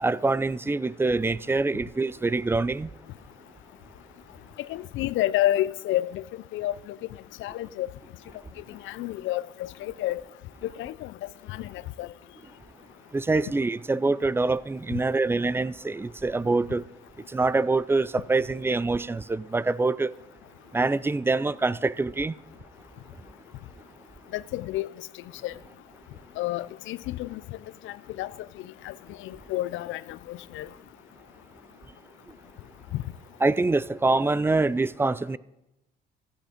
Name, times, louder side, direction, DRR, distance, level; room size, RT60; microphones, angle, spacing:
voice 1, 0.0-2.9 13.1-16.8 17.3-20.1 20.7-22.3 33.4-35.4, right 3 dB, 10° right, 0.3 m, -25 dB
voice 2, 4.7-6.2 6.5-6.9 7.4-7.9 8.7-10.2 10.6-11.1 11.5-12.1 24.3-24.9 25.4-25.5 26.4-27.4 27.8-28.3 28.6-28.9 29.2-30.7 32.9-33.0, left 14 dB, 75° left, 0.4 m, -30 dB
15.0 x 8.6 x 5.0 m
cardioid pair, 100°, 20 cm